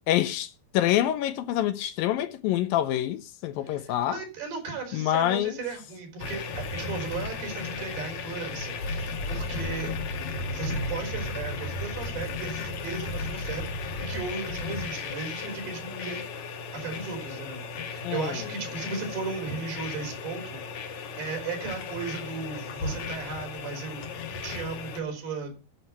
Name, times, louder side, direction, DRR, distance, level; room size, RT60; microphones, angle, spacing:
voice 1, 0.1-4.2 4.9-5.6 18.0-18.4, left 12 dB, 75° left, 2.3 m, -26 dB
voice 2, 3.7-9.9 10.5-24.1 24.4-25.5, right 4 dB, 80° right, 5.7 m, -36 dB
sound 1, 6.2-25.0, left 3 dB, 60° left, 2.2 m, -35 dB
12.0 x 6.2 x 5.6 m
omnidirectional pair, 4.4 m